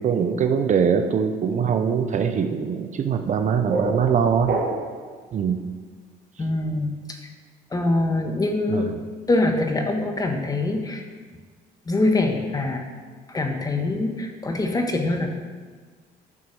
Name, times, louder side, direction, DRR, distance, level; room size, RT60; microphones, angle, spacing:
voice 1, 0.0-4.6 5.3-5.6 8.7-9.0, right 7 dB, 45° right, 7 dB, 0.7 m, -22 dB
sound 1, 3.2-5.1, right 3 dB, 65° right, 2.2 m, -28 dB
voice 2, 6.4-7.2 7.7-8.9 9.3-11.0 11.9-12.8 13.3-15.3, left 2 dB, 20° left, 4 dB, 1.4 m, -24 dB
11.0 x 6.0 x 6.4 m, 1.5 s
cardioid pair, 110°, 17 cm